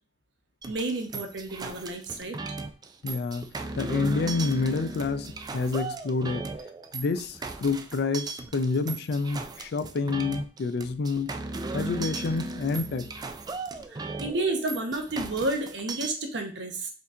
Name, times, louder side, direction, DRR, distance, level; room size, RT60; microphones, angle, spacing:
sound 1, 0.6-16.1, right 3 dB, 20° right, 0.3 m, -37 dB
voice 1, 0.7-2.4 13.9-16.9, right 2 dB, 75° right, 0.9 m, -31 dB
voice 2, 3.0-3.5 3.8-6.5 6.9-11.3 11.7-13.1, left 4 dB, 65° left, 0.4 m, -28 dB
4.4 x 2.7 x 3.6 m
head